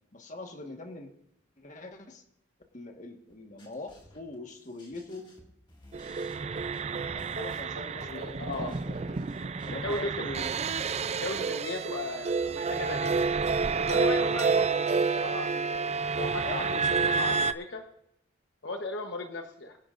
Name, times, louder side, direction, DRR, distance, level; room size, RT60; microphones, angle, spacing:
voice 1, 0.1-1.1 1.6-2.2 2.7-5.3 7.1-9.3 9.6-10.3 16.4-16.9, left 2 dB, 40° left, 4 dB, 1.5 m, -43 dB
sound 1, 3.3-12.9, left 1 dB, 25° left, 2.1 m, -57 dB
sound 2, 5.9-17.5, right 5 dB, 35° right, 0.4 m, -29 dB
voice 2, 7.7-8.7 9.8-10.5 11.1-13.3 13.9-17.8 18.6-19.8, left 2 dB, 65° left, 4 dB, 1.1 m, -37 dB
23.5 x 10.5 x 2.6 m, 0.78 s
head